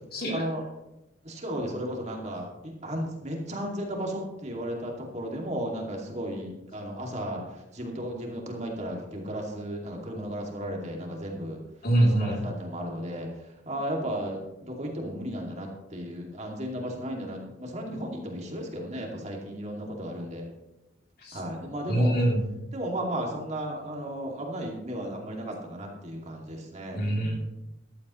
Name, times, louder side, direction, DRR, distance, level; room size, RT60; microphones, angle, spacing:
voice 1, 0.3-0.6 1.2-11.6 12.0-20.5 21.3-22.1 22.7-27.5, equal, 40° right, 0 dB, 2.4 m, -34 dB
voice 2, 11.8-12.4 21.2-21.4 21.9-22.5 26.9-27.5, right 1 dB, 55° left, -1 dB, 3.3 m, -24 dB
14.5 x 11.5 x 3.2 m, 0.93 s
head